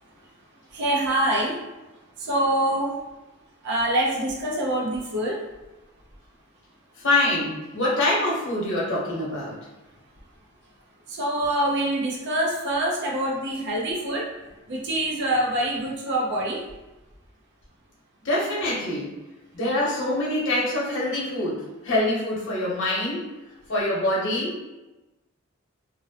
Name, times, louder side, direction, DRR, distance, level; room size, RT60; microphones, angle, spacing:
voice 1, 0.7-1.6 2.2-3.0 3.6-5.4 11.1-14.3 14.7-16.6, right 1 dB, 55° right, -2 dB, 0.6 m, -25 dB
voice 2, 7.0-9.6 18.2-19.2 19.5-23.3 23.7-24.6, left 1 dB, 60° left, -5 dB, 0.8 m, -25 dB
2.5 x 2.0 x 2.7 m, 1.1 s
head